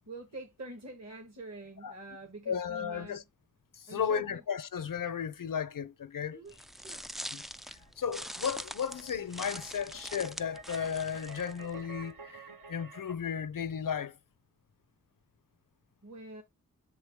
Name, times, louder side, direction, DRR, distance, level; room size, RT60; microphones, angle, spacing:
voice 1, 0.0-3.2 3.9-4.4 6.3-7.0 16.0-16.4, right 2 dB, 50° right, 1.6 m, -46 dB
voice 2, 2.5-3.2 3.7-6.4 7.3-7.4 8.0-14.2, left 7 dB, 65° left, 0.7 m, -34 dB
sound 1, 6.5-12.1, equal, ahead, 0.3 m, -44 dB
sound 2, 7.5-13.1, right 4 dB, 70° right, 1.1 m, -51 dB
7.1 x 4.0 x 3.5 m
cardioid pair, 45°, 35 cm